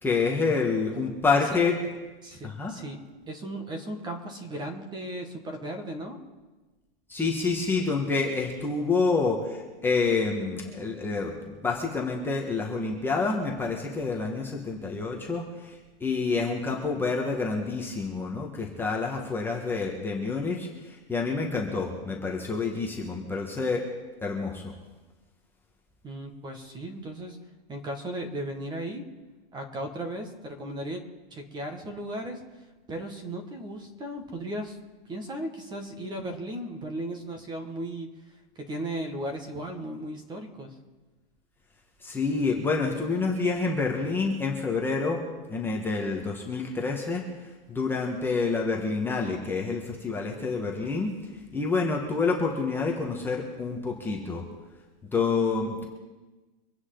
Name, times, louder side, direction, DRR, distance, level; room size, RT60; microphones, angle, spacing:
voice 1, 0.0-1.8 2.4-2.7 7.1-23.8 24.2-24.7 42.0-45.2 45.5-51.1 51.5-54.4 55.1-55.8, left 4 dB, 5° left, -1 dB, 1.5 m, -28 dB
voice 2, 2.2-3.0 3.3-6.2 26.0-27.4 27.7-29.0 29.5-32.4 32.9-34.8 35.0-38.1 38.5-40.7, right 1 dB, 15° right, 5 dB, 1.7 m, -36 dB
25.0 x 9.6 x 3.9 m, 1.2 s
hypercardioid pair, 150°, 30 cm